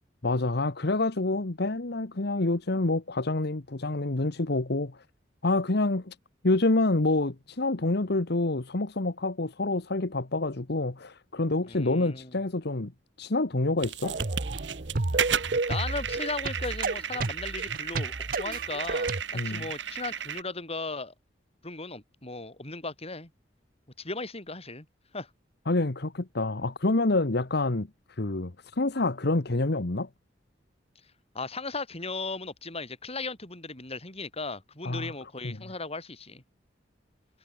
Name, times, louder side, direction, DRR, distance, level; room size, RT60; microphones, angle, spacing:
voice 1, 0.2-5.0 5.4-6.1 6.4-12.9 13.2-14.2 19.3-19.6 25.7-30.1 34.8-35.1 35.4-35.6, left 2 dB, 60° left, 1.3 m, -27 dB
voice 2, 11.7-12.4 15.7-19.1 19.4-21.1 21.6-23.3 24.0-24.9 25.1-25.3 31.3-36.4, left 3 dB, 35° left, 7.8 m, -36 dB
sound 1, 13.8-20.4, right 8 dB, 75° right, 2.5 m, -34 dB
sound 2, 14.0-19.2, right 3 dB, 50° right, 1.1 m, -31 dB
head